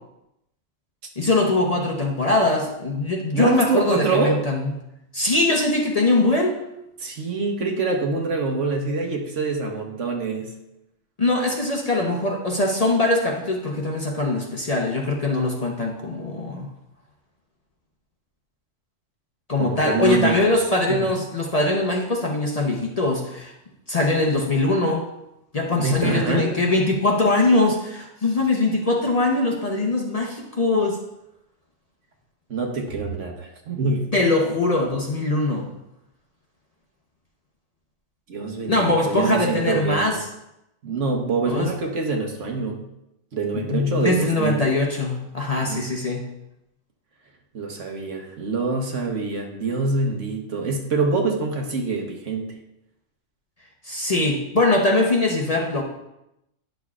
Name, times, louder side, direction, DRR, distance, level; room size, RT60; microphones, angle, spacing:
voice 1, 1.2-4.7 5.1-6.6 11.2-16.7 19.5-23.5 23.9-25.0 25.5-31.0 34.1-35.7 38.7-40.2 41.5-41.7 43.5-46.2 53.9-55.8, left 2 dB, 35° left, 0 dB, 0.8 m, -22 dB
voice 2, 3.3-4.4 7.0-10.5 19.6-20.6 20.9-21.1 25.8-26.5 32.5-34.1 38.3-40.2 40.8-42.8 43.3-44.6 45.5-45.9 47.5-52.6, right 3 dB, 70° right, 2 dB, 1.3 m, -25 dB
10.5 x 6.5 x 2.4 m, 0.87 s
omnidirectional pair, 1.3 m